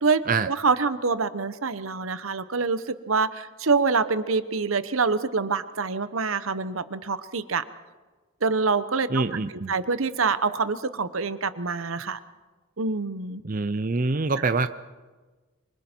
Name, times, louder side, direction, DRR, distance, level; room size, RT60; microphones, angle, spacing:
voice 1, 0.0-7.6 8.4-9.2 9.7-12.2 12.8-13.4, right 4 dB, 85° right, 13 dB, 1.0 m, -26 dB
voice 2, 9.1-9.7 13.4-14.7, right 3 dB, 40° right, 11 dB, 0.6 m, -25 dB
26.0 x 24.0 x 4.5 m, 1.3 s
head